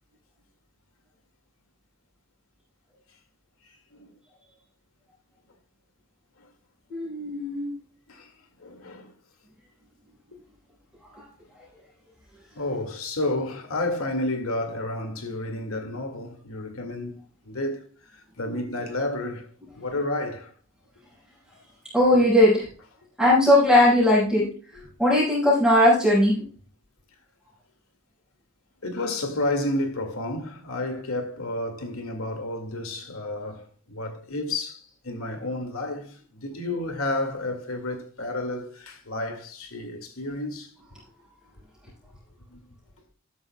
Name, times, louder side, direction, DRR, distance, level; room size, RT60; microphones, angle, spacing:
voice 1, 3.6-4.1 6.4-6.5 8.1-8.3 8.6-9.1 12.6-19.5 19.8-20.5 24.7-24.9 28.8-40.7 42.5-42.7, left 2 dB, 85° left, 2.1 m, -31 dB
voice 2, 6.9-7.7 21.9-22.6 23.2-24.5 25.0-26.3, left 1 dB, 5° right, 5.2 m, -18 dB
13.5 x 11.0 x 2.3 m
head